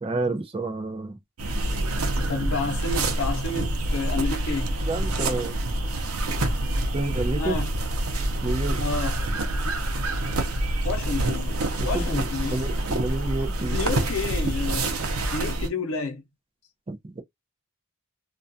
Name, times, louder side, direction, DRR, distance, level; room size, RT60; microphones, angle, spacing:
voice 1, 0.0-1.2 4.9-5.6 6.9-7.6 8.4-8.8 11.8-13.8 16.9-17.2, right 2 dB, 25° right, 0.5 m, -29 dB
sound 1, 1.4-15.7, right 1 dB, 90° right, 0.6 m, -27 dB
voice 2, 2.2-4.7 7.4-7.7 8.8-9.1 10.8-11.6 11.8-12.7 13.7-14.9 15.3-16.2, left 4 dB, 75° left, 0.7 m, -30 dB
2.3 x 2.2 x 2.6 m
head